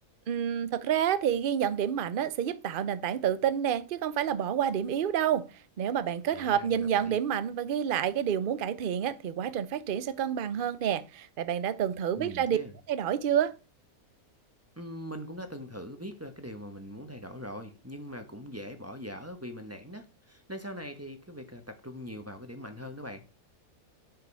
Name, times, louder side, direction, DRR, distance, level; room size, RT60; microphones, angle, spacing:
voice 1, 0.3-5.4 5.8-12.6 12.9-13.5, right 9 dB, 50° right, 0.7 m, -29 dB
voice 2, 6.3-7.2 12.1-12.8 14.8-23.3, equal, 10° right, 1.1 m, -42 dB
10.5 x 5.2 x 5.5 m
omnidirectional pair, 1.5 m